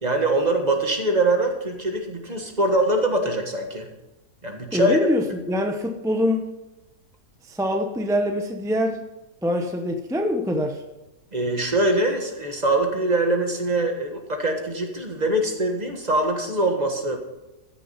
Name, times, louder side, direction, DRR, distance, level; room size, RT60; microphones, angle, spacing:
voice 1, 0.0-3.9 4.4-5.0 11.3-17.2, right 1 dB, 25° right, 3 dB, 1.6 m, -23 dB
voice 2, 4.7-6.5 7.5-9.0 9.4-10.8, left 1 dB, 5° right, 4 dB, 0.4 m, -24 dB
14.5 x 6.7 x 5.7 m, 0.99 s
omnidirectional pair, 1.7 m